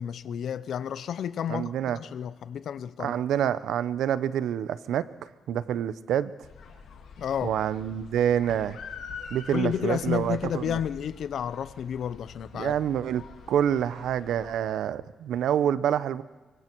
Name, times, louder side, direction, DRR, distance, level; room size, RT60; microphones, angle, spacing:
voice 1, 0.0-3.1 7.2-7.6 9.5-12.7, left 9 dB, 55° left, 0.7 m, -31 dB
voice 2, 1.5-2.0 3.0-5.0 5.5-6.3 7.4-8.8 9.3-10.8 12.5-13.2 13.5-16.2, right 9 dB, 80° right, 0.7 m, -27 dB
sound 1, 6.4-14.5, left 5 dB, 75° left, 2.3 m, -45 dB
24.5 x 24.0 x 4.6 m
wide cardioid pair, 180°, 0 cm